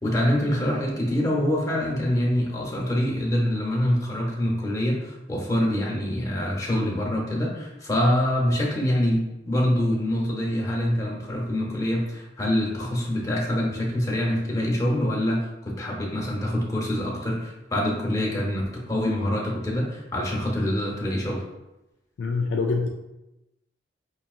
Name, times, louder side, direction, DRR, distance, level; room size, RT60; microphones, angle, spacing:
voice 1, 0.0-21.4, left 1 dB, 20° left, -3 dB, 0.8 m, -25 dB
voice 2, 22.2-22.9, left 4 dB, 70° left, 1 dB, 0.4 m, -25 dB
5.3 x 2.7 x 2.4 m, 0.96 s
head